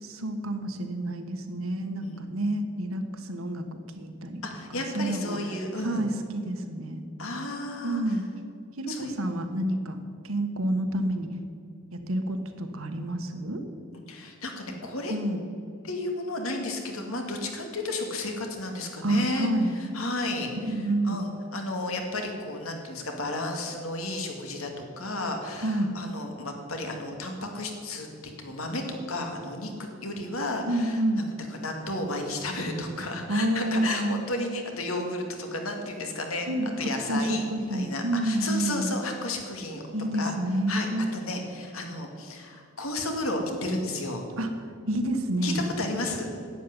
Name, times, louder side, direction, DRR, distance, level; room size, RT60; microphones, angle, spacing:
voice 1, 0.0-3.6 3.9-4.4 4.7-5.4 5.8-7.0 7.8-8.2 8.8-10.0 10.2-11.3 11.9-13.6 15.1-15.4 19.0-19.7 20.6-21.2 25.6-25.9 30.7-31.2 33.3-34.2 36.5-38.9 39.9-41.2 44.4-44.5 44.9-45.7, right 1 dB, 85° right, 6 dB, 1.5 m, -28 dB
voice 2, 4.4-6.0 7.2-8.2 8.9-9.1 14.1-15.1 15.8-19.5 19.8-20.8 21.0-31.2 31.5-36.5 36.8-39.8 40.1-40.3 40.7-44.3 45.4-46.3, left 2 dB, 85° left, 3 dB, 2.3 m, -33 dB
11.0 x 8.7 x 9.8 m, 2.3 s
head